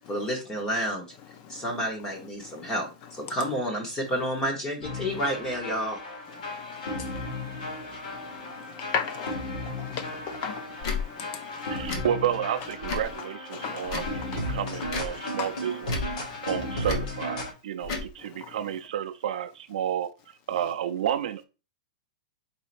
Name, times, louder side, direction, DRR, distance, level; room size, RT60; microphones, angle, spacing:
voice 1, 0.1-1.0 1.5-6.0, equal, 15° left, 1.0 m, -30 dB
voice 2, 1.2-3.5 4.1-4.2 5.1-5.3 6.2-12.0 12.6-12.7 13.0-13.2 13.5-14.8 15.1-16.7 17.4-17.5 17.8-18.8 20.5-20.7, left 7 dB, 30° left, 0.6 m, -40 dB
sound 1, 4.8-17.5, left 1 dB, 75° left, 2.1 m, -35 dB
Tick / Tick-tock, 10.8-11.0 11.8-12.1 12.8-13.1 13.8-14.2 14.8-15.1 15.8-16.1 16.8-17.1 17.8-18.1, left 4 dB, 50° left, 1.3 m, -32 dB
voice 3, 11.7-14.0 14.3-16.1 16.4-20.1 20.5-21.4, right 10 dB, 65° right, 0.4 m, -31 dB
4.6 x 4.2 x 2.5 m
supercardioid pair, 170°, 4 cm